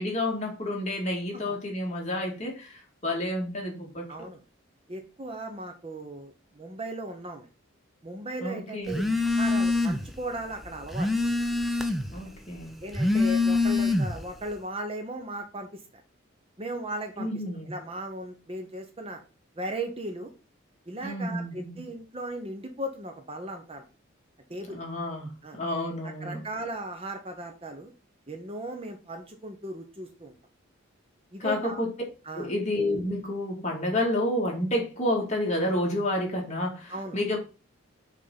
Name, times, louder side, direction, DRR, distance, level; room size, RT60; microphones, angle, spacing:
voice 1, 0.0-4.1 8.4-9.1 12.1-12.7 17.2-17.7 21.0-21.8 24.7-26.4 31.4-31.9 32.3-37.4, left 1 dB, 35° left, 2.2 m, -30 dB
voice 2, 4.1-4.4 4.9-7.5 8.0-9.0 9.3-11.1 12.8-16.0 16.6-17.3 17.7-19.2 19.6-20.3 20.9-23.8 24.5-24.8 25.4-25.6 26.0-27.9 28.3-30.3 31.3-31.8 32.2-32.5 36.9-37.2, right 1 dB, 25° right, 0.9 m, -37 dB
Telephone, 8.9-10.2 10.5-12.2 12.8-14.3, left 3 dB, ahead, 0.6 m, -25 dB
6.5 x 3.7 x 5.6 m
head